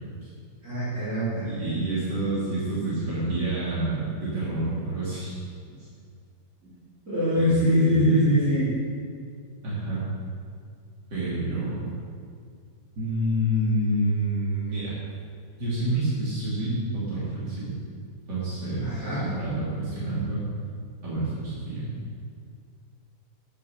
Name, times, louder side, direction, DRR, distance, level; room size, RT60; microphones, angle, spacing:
voice 1, 0.6-1.5 7.1-8.7 18.9-19.2, equal, 50° right, -13 dB, 4.1 m, -23 dB
voice 2, 1.4-5.3 7.4-8.2 9.6-10.0 11.1-11.9 13.0-14.9 15.6-17.7 18.3-20.5 21.0-21.9, right 1 dB, 85° right, -10 dB, 3.6 m, -28 dB
10.5 x 10.0 x 6.5 m, 2.2 s
omnidirectional pair, 1.8 m